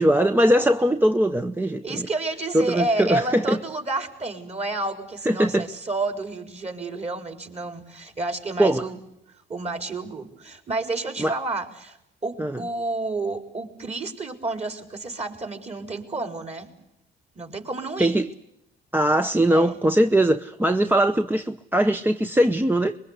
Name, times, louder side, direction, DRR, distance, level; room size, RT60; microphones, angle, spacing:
voice 1, 0.0-2.1 2.5-3.6 5.2-5.7 8.6-8.8 11.2-11.4 12.4-12.6 18.0-18.3 18.9-23.0, right 1 dB, 10° right, 0.9 m, -21 dB
voice 2, 1.8-9.0 9.5-16.7 17.3-18.2 19.5-19.8, right 2 dB, 35° right, 4.5 m, -30 dB
24.5 x 22.5 x 8.2 m
cardioid pair, 90°, 20 cm